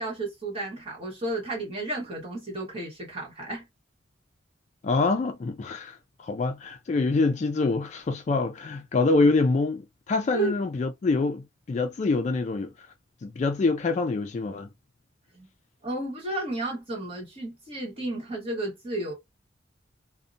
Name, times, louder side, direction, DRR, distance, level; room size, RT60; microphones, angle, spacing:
voice 1, 0.0-3.6 10.3-10.5 15.3-15.5 15.8-19.1, right 2 dB, 30° right, 1.1 m, -32 dB
voice 2, 4.8-12.9 13.2-14.7, left 3 dB, 40° left, 0.3 m, -25 dB
2.7 x 2.1 x 2.5 m
head